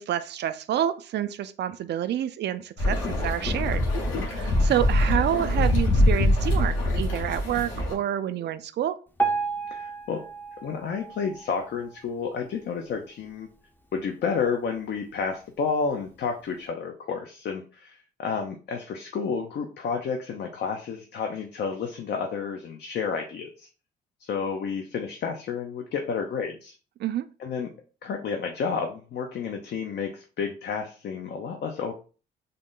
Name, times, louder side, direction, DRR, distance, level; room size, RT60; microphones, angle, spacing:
voice 1, 0.0-3.8 4.2-9.0 27.0-27.3, right 11 dB, 60° right, 0.4 m, -28 dB
sound 1, 2.8-7.9, left 1 dB, 75° left, 1.4 m, -23 dB
Piano, 9.2-12.3 12.8-13.0 13.3-13.4 14.1-14.2 14.7-14.8, right 4 dB, 10° left, 0.5 m, -32 dB
voice 2, 9.7-10.2 10.6-13.5 13.9-23.7 24.2-26.7 27.4-27.7 28.0-31.9, left 5 dB, 60° left, 0.6 m, -31 dB
3.7 x 2.1 x 3.7 m
cardioid pair, 90°, 20 cm